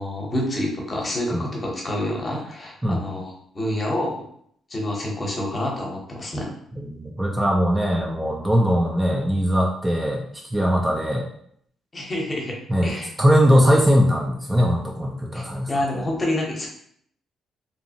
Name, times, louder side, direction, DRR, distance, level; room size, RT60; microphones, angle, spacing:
voice 1, 0.0-4.2 4.7-6.5 11.9-12.6 12.8-13.1 15.3-15.4 15.7-16.7, left 1 dB, 30° left, -1 dB, 0.8 m, -27 dB
voice 2, 6.8-10.2 10.5-11.3 12.7-16.0, equal, 15° right, -1 dB, 0.4 m, -20 dB
2.7 x 2.0 x 2.7 m, 0.66 s
cardioid pair, 90°, 0 cm